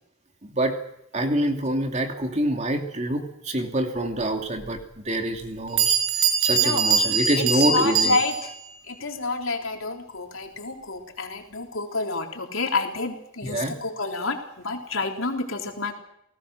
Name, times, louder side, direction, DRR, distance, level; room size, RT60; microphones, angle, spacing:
voice 1, 0.4-0.8 1.1-6.0 6.4-8.2 13.4-13.7, right 1 dB, 30° right, 4 dB, 2.8 m, -26 dB
Bell, 4.6-4.7 5.4-5.5 5.8-8.6, right 6 dB, 75° right, 7.6 m, -22 dB
voice 2, 6.6-8.5 8.9-15.9, left 3 dB, 65° left, 3 dB, 3.8 m, -29 dB
29.5 x 19.0 x 6.5 m, 0.80 s
head